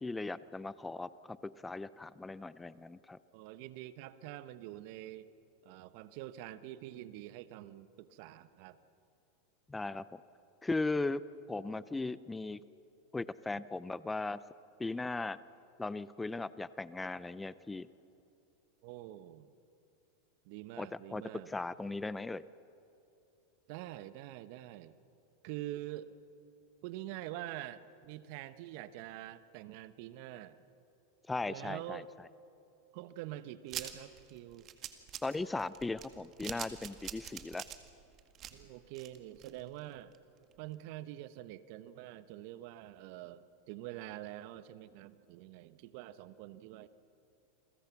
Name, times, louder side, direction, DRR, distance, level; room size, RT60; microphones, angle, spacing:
voice 1, 0.0-3.2 9.7-10.0 10.6-11.2 11.5-12.6 13.1-14.4 14.8-15.4 15.8-17.9 20.8-22.4 31.3-32.0 35.2-37.6, left 3 dB, 10° left, 17 dB, 0.6 m, -37 dB
voice 2, 3.3-5.3 5.6-8.8 18.8-19.5 20.4-21.5 23.7-25.0 25.4-26.1 26.8-30.5 31.5-32.1 32.9-34.7 38.5-40.1 40.6-46.9, right 14 dB, 60° right, 14 dB, 1.0 m, -46 dB
sound 1, 33.7-39.8 40.1-40.2 40.5-40.6, right 10 dB, 40° right, 2.0 m, -45 dB
29.0 x 22.0 x 6.0 m, 2.7 s
hypercardioid pair, 95°, 0 cm